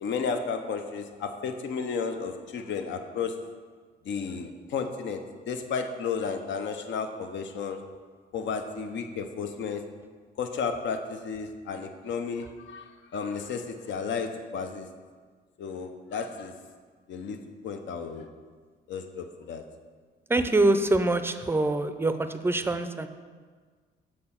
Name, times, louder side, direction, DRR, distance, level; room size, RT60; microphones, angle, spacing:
voice 1, 0.0-3.3 4.1-5.2 5.5-7.8 8.3-9.8 10.4-14.9 15.6-16.5 17.1-17.4 17.6-18.3 18.9-19.6, left 5 dB, 70° left, 7 dB, 0.7 m, -33 dB
voice 2, 20.3-23.1, right 2 dB, 10° right, 9 dB, 0.4 m, -24 dB
6.7 x 4.3 x 5.8 m, 1.5 s
cardioid pair, 90°, 20 cm